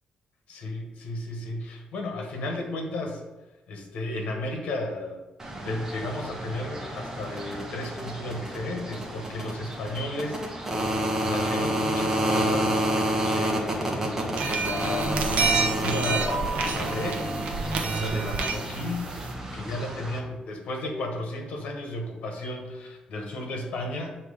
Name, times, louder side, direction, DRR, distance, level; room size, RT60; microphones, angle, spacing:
voice 1, 0.5-3.2 3.7-5.2 5.6-10.9 11.3-17.3 17.8-19.1 19.5-24.1, left 2 dB, 75° left, 2 dB, 1.3 m, -34 dB
sound 1, 5.4-20.2, right 1 dB, 20° right, 1.0 m, -30 dB
sound 2, 14.4-19.3, right 4 dB, 80° right, 0.8 m, -29 dB
7.6 x 3.0 x 4.9 m, 1.0 s
cardioid pair, 150°, 2 cm